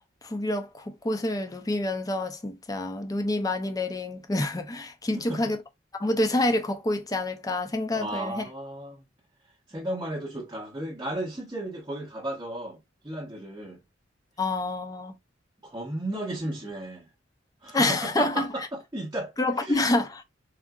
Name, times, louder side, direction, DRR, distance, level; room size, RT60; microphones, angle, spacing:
voice 1, 0.2-5.6 5.9-8.4 14.4-15.2 17.7-18.4 19.4-20.2, left 2 dB, 20° left, 0.5 m, -27 dB
voice 2, 5.1-5.5 7.9-9.1 9.4-13.8 15.6-17.1 17.6-19.9, right 1 dB, 20° right, 0.7 m, -35 dB
3.6 x 2.5 x 2.2 m
head